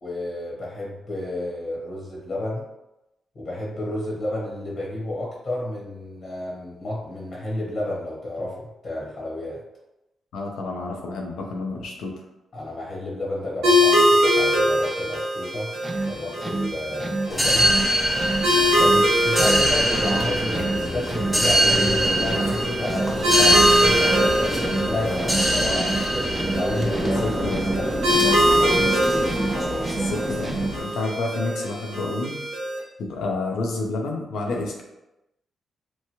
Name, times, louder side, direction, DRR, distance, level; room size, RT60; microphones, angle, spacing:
voice 1, 0.0-2.7 3.3-9.6 12.5-15.7 16.0-17.7 18.5-25.9 26.5-28.9, left 1 dB, 55° left, -4 dB, 1.0 m, -31 dB
voice 2, 10.3-12.1 27.0-27.6 29.9-32.4 33.0-34.8, left 3 dB, 85° left, 1 dB, 0.6 m, -29 dB
sound 1, 13.6-32.8, equal, 90° right, 0.9 m, -23 dB
sound 2, 15.7-31.0, right 3 dB, 25° right, 0.3 m, -31 dB
sound 3, 17.3-30.8, equal, ahead, 0.8 m, -24 dB
3.0 x 2.2 x 2.8 m, 0.93 s
cardioid pair, 65°, 0 cm